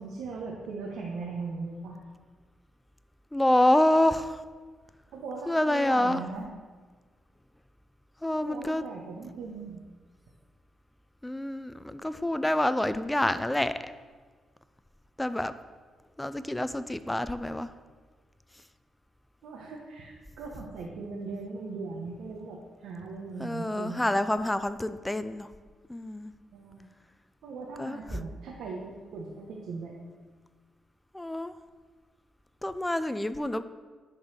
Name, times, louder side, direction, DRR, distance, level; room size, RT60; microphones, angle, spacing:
voice 1, 0.0-2.0 5.1-6.5 8.4-9.8 19.4-24.0 26.5-26.9 27.4-29.9 33.0-33.1, right 4 dB, 80° right, -3 dB, 1.1 m, -39 dB
voice 2, 3.3-4.4 5.5-6.2 8.2-8.8 11.2-13.9 15.2-15.5 16.2-17.7 23.4-25.5 25.9-26.3 27.8-28.0 31.1-31.5 32.6-33.6, left 1 dB, 10° left, 12 dB, 0.4 m, -27 dB
10.0 x 4.1 x 6.4 m, 1.4 s
cardioid pair, 100°, 0 cm